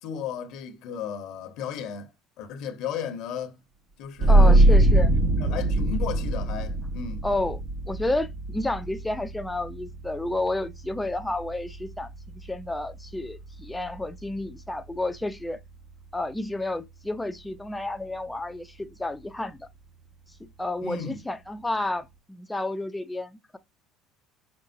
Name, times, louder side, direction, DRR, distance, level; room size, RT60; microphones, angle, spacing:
voice 1, 0.0-2.1 2.4-3.6 4.0-4.7 5.4-7.2 20.8-21.2, left 7 dB, 65° left, 1.0 m, -34 dB
sound 1, 4.2-15.5, right 1 dB, 40° right, 1.1 m, -24 dB
voice 2, 4.3-5.1 7.2-7.6 7.9-15.6 16.1-19.7 20.6-23.6, left 2 dB, 10° left, 0.6 m, -31 dB
5.5 x 3.5 x 2.6 m
supercardioid pair, 95°, 0 cm